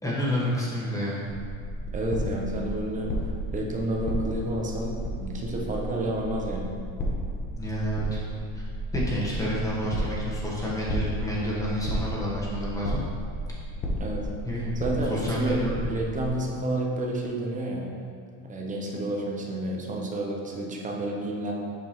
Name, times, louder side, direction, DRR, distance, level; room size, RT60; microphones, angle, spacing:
voice 1, 0.0-1.2 7.5-8.2 8.9-13.0 14.4-14.7 15.1-15.9, equal, 10° left, -6 dB, 1.5 m, -29 dB
sound 1, 1.3-16.3, equal, 30° left, 1.0 m, -33 dB
voice 2, 1.9-3.1 3.5-6.7 9.4-9.6 13.9-14.3 14.8-17.8 18.5-21.5, right 1 dB, 20° right, -1 dB, 0.9 m, -30 dB
7.2 x 5.2 x 3.1 m, 2.2 s
supercardioid pair, 130°, 39 cm